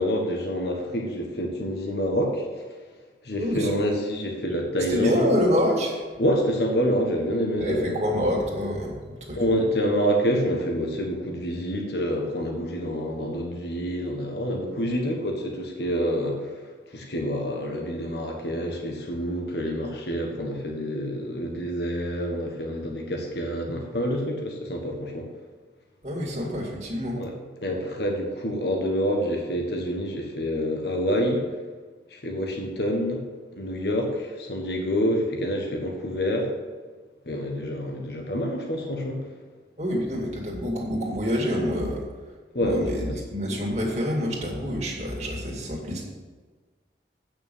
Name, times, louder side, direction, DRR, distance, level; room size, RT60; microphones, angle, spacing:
voice 1, 0.0-2.5 3.2-5.3 6.2-8.0 9.4-16.4 16.9-25.3 27.2-27.3 27.6-31.4 32.1-33.2 33.5-36.5 37.3-39.2 42.5-43.1, equal, 70° left, 1 dB, 1.4 m, -27 dB
voice 2, 3.4-3.7 4.9-6.0 7.6-9.7 26.0-27.2 39.8-42.0 42.6-46.0, equal, 40° right, -2 dB, 2.2 m, -27 dB
8.8 x 6.1 x 6.9 m, 1.4 s
head